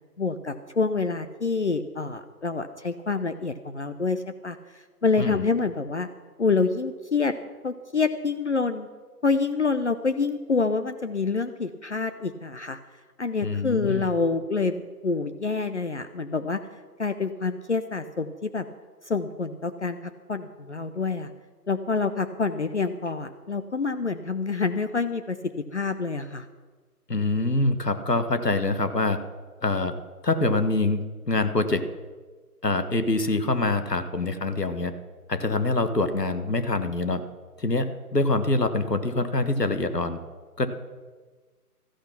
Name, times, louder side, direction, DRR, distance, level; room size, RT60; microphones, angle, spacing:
voice 1, 0.2-6.1 6.4-7.3 7.6-8.9 9.2-12.8 13.2-16.6 17.0-18.7 19.0-21.3 21.7-26.5, left 4 dB, 45° left, 10 dB, 0.7 m, -27 dB
voice 2, 13.4-14.1 27.1-29.2 29.6-30.0 30.2-31.9 32.6-34.9 35.3-37.2 37.6-40.2 40.6-40.7, left 2 dB, 80° left, 9 dB, 1.6 m, -25 dB
14.0 x 11.5 x 6.0 m, 1.4 s
figure-of-eight pair, 150°, 47 cm